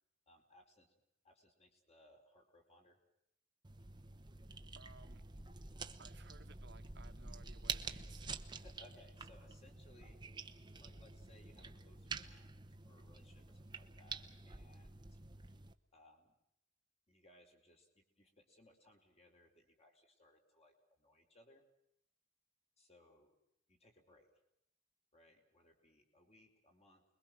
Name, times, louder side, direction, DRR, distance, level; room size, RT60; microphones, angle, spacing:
voice 1, 0.3-0.9 1.2-3.0 8.5-10.2 10.8-15.2 15.9-16.3 17.1-21.6 22.8-23.4 23.7-24.3 25.1-27.0, left 1 dB, 35° left, 3 dB, 4.4 m, -66 dB
sound 1, 3.6-15.7, right 4 dB, 25° right, 1.0 m, -48 dB
voice 2, 4.7-5.2 6.0-8.3, right 4 dB, 60° right, 8 dB, 1.5 m, -61 dB
30.0 x 22.0 x 6.1 m, 0.78 s
head